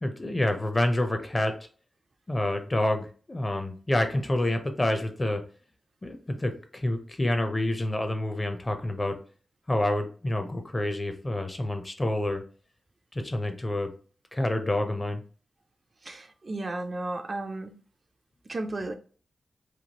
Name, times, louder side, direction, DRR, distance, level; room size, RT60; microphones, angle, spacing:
voice 1, 0.0-1.5 2.3-5.4 6.0-9.2 9.7-12.4 13.1-13.9 14.3-15.2, left 1 dB, 25° left, 0.5 m, -28 dB
voice 2, 16.0-17.8 18.5-18.9, right 2 dB, 40° right, 0.3 m, -34 dB
3.0 x 2.3 x 2.8 m
wide cardioid pair, 105°, 0 cm